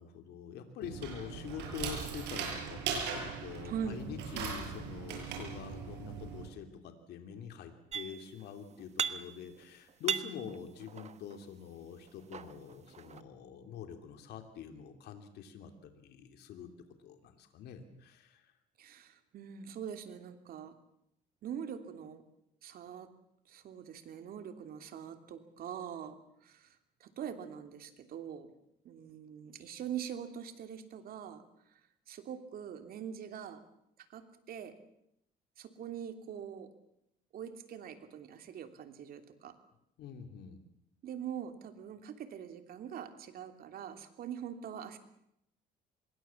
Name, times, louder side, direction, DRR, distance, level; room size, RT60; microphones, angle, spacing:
voice 1, 0.0-16.7 17.0-18.5 40.0-40.6, left 7 dB, 75° left, 6 dB, 3.1 m, -45 dB
sound 1, 0.8-6.4, right 6 dB, 85° right, 7.4 m, -39 dB
voice 2, 3.6-4.0 4.3-4.6 18.8-20.7 21.4-22.2 22.6-23.1 23.5-26.2 26.4-28.5 28.8-31.4 32.1-33.6 34.0-34.7 35.6-36.7 37.3-39.5 41.0-45.0, right 8 dB, 60° right, 8 dB, 3.0 m, -43 dB
sound 2, 7.9-8.4 8.7-9.6 9.9-11.4 12.1-13.2, right 7 dB, 40° right, 1.4 m, -38 dB
25.5 x 22.0 x 7.3 m, 0.79 s
cardioid pair, 110°, 17 cm